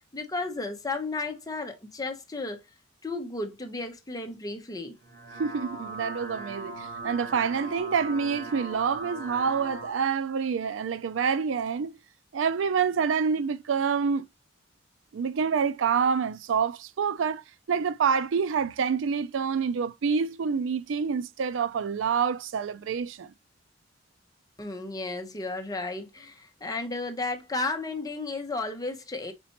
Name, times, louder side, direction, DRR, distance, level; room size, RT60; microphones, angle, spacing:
voice 1, 0.1-2.6 3.0-5.0 24.6-29.3, left 3 dB, 20° left, 0.8 m, -33 dB
sound 1, 5.0-9.9, right 2 dB, 60° right, 2.2 m, -39 dB
voice 2, 5.4-12.0 12.3-14.2 15.1-23.3, right 6 dB, 90° right, 0.4 m, -27 dB
4.3 x 4.2 x 2.9 m
head